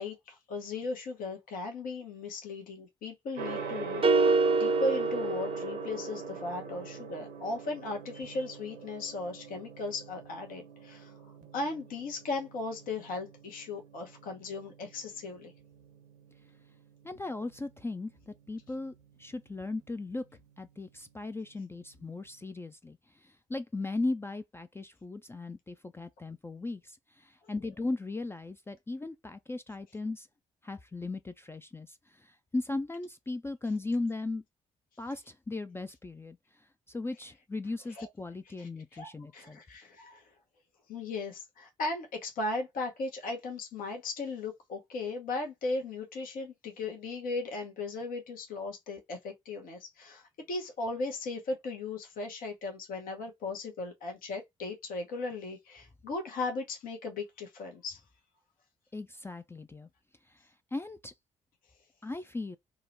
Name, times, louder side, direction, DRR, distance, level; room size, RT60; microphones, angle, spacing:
voice 1, 0.0-15.5 37.9-38.1 38.6-40.3 40.9-58.0, left 3 dB, 65° left, 0.8 m, -37 dB
Gong, 3.4-22.3, right 5 dB, 70° right, 0.7 m, -45 dB
sound 1, 4.0-6.3, right 3 dB, 35° right, 0.6 m, -26 dB
voice 2, 17.0-18.9 19.2-20.2 20.6-30.3 30.6-34.4 35.0-39.6 58.9-59.9 60.3-61.1 62.0-62.6, left 2 dB, 15° left, 0.4 m, -37 dB
3.7 x 2.1 x 2.7 m
hypercardioid pair, 40°, 16 cm